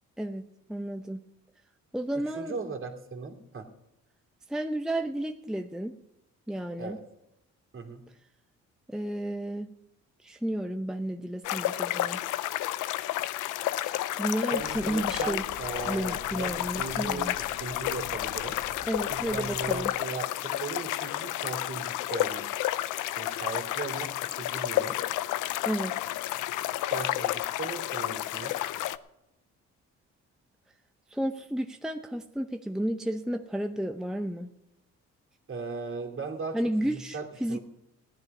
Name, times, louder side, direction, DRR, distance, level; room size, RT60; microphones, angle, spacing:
voice 1, 0.7-1.2 1.9-2.6 4.5-6.0 6.5-7.0 8.9-9.7 10.2-12.2 14.1-15.4 15.9-17.3 18.9-19.9 25.6-26.0 31.1-34.5 36.5-37.6, right 1 dB, ahead, 4 dB, 0.7 m, -32 dB
voice 2, 2.3-3.7 6.8-7.0 7.7-8.0 14.5-18.6 19.1-22.5 23.1-25.0 26.9-28.6 35.5-36.6 36.9-37.6, right 4 dB, 45° right, 2 dB, 2.7 m, -38 dB
sound 1, 11.4-29.0, left 14 dB, 90° left, 0.6 m, -31 dB
sound 2, 14.6-19.8, left 5 dB, 60° left, 1.7 m, -46 dB
16.0 x 11.0 x 5.4 m, 0.88 s
cardioid pair, 90°, 30 cm